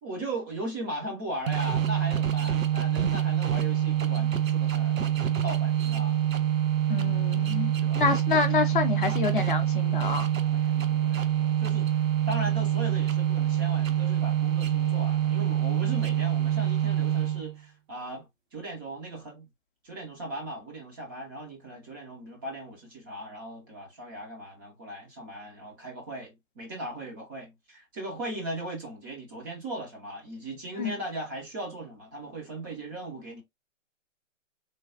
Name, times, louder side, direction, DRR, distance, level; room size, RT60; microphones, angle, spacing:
voice 1, 0.0-6.2 7.8-8.0 10.4-11.9 12.3-19.5 19.8-33.4, right 1 dB, 15° right, 0.6 m, -38 dB
sound 1, 1.5-17.6, right 11 dB, 90° right, 0.6 m, -26 dB
voice 2, 6.9-10.3 30.8-30.9, left 5 dB, 45° left, 0.5 m, -27 dB
3.2 x 2.2 x 2.4 m
figure-of-eight pair, 135°, 38 cm